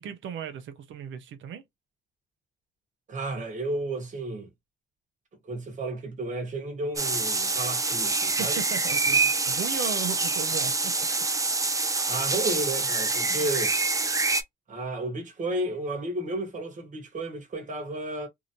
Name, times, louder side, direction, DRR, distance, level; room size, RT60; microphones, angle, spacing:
voice 1, 0.0-1.6 8.3-11.1 13.3-13.5, right 8 dB, 75° right, 0.8 m, -37 dB
voice 2, 3.1-4.5 5.4-8.6 12.1-13.7 14.7-18.3, right 2 dB, 40° right, 1.3 m, -32 dB
sound 1, 7.0-14.4, right 3 dB, 15° right, 0.6 m, -26 dB
2.9 x 2.8 x 2.6 m
cardioid pair, 90°, 20 cm